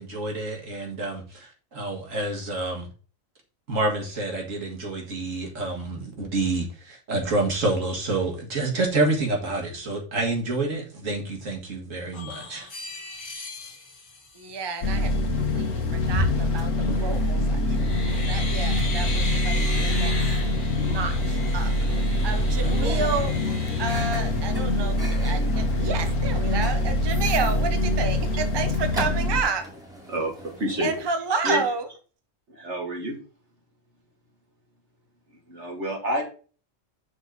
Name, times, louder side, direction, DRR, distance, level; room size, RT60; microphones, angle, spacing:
voice 1, 0.0-2.9 3.7-12.7, right 2 dB, 80° right, 1 dB, 2.2 m, -28 dB
sound 1, 12.1-15.1 17.0-17.3 17.7-25.0 25.4-25.5 25.8-26.7 27.1-27.6, left 2 dB, 40° left, 1.6 m, -38 dB
voice 2, 14.3-17.8 18.2-20.1 20.8-21.7 22.2-23.3 23.8-29.6 30.8-31.9, right 4 dB, 25° right, 7 dB, 0.7 m, -30 dB
sound 2, 14.8-29.4, left 1 dB, 80° left, 1.2 m, -24 dB
Microwave oven, 16.0-31.1, equal, 5° right, 2.1 m, -37 dB
voice 3, 30.1-30.9 31.4-31.6 32.5-33.2 35.5-36.2, right 1 dB, 60° right, 0 dB, 2.6 m, -28 dB
6.1 x 3.9 x 5.7 m, 0.37 s
omnidirectional pair, 1.3 m